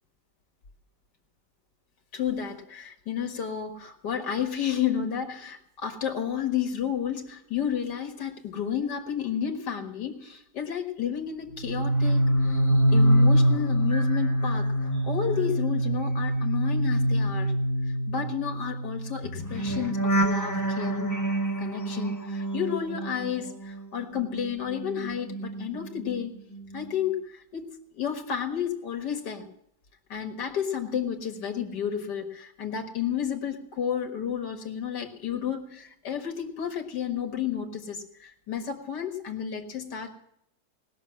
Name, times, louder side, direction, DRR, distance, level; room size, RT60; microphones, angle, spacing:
voice 1, 2.1-12.3 12.9-17.5 18.1-21.1 21.6-26.4 26.7-29.5 30.1-40.1, left 8 dB, 85° left, 6 dB, 2.3 m, -31 dB
sound 1, 11.6-23.8 24.1-26.2 26.5-26.9, right 1 dB, 15° left, 1.0 m, -26 dB
19.0 x 6.7 x 7.6 m, 0.73 s
omnidirectional pair, 1.8 m